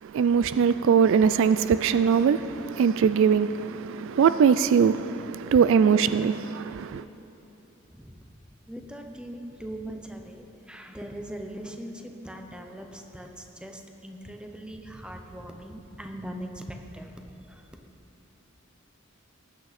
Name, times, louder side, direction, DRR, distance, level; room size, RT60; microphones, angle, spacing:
voice 1, 0.0-7.0, right 6 dB, 65° right, 0.3 m, -21 dB
voice 2, 8.7-17.1 17.5-17.6, right 1 dB, 5° right, 0.8 m, -40 dB
18.5 x 8.9 x 4.2 m
head